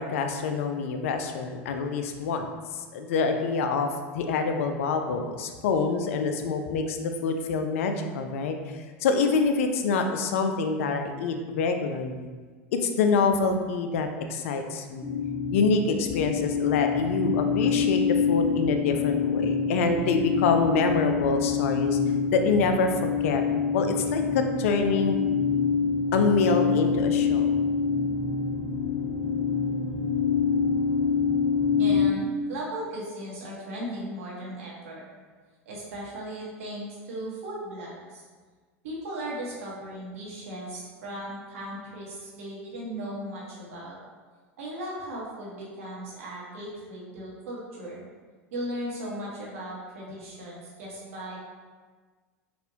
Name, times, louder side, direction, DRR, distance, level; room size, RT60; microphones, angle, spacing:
voice 1, 0.0-3.9 4.1-7.0 7.2-8.6 9.0-12.3 12.8-15.1 15.5-18.0 18.3-22.0 22.3-23.4 23.7-25.2 26.1-27.5, left 4 dB, 70° left, 6 dB, 0.4 m, -26 dB
sound 1, 15.0-32.1, left 5 dB, 10° left, 0.7 m, -26 dB
voice 2, 31.8-35.1 35.6-38.2 38.8-43.9 44.6-48.0 48.5-51.5, right 1 dB, 75° right, -5 dB, 1.1 m, -37 dB
4.1 x 2.5 x 2.7 m, 1.4 s
hypercardioid pair, 85°, 7 cm